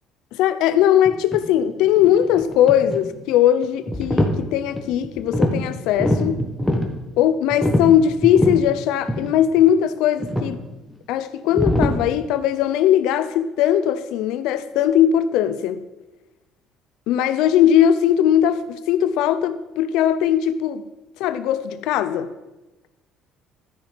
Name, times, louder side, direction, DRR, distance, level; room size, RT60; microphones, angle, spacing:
voice 1, 0.3-6.4 7.2-10.6 11.1-15.8 17.1-20.8 21.2-22.3, left 10 dB, 80° left, 0.6 m, -19 dB
sound 1, 1.0-1.4 1.8-3.1 3.6-4.4 4.7-5.6 5.9-6.9 7.5-8.6 9.1-9.3 9.6-9.7 10.2-10.6 11.5-11.9, equal, 5° left, 1.3 m, -22 dB
13.0 x 5.9 x 5.1 m
cardioid pair, 145°, 0 cm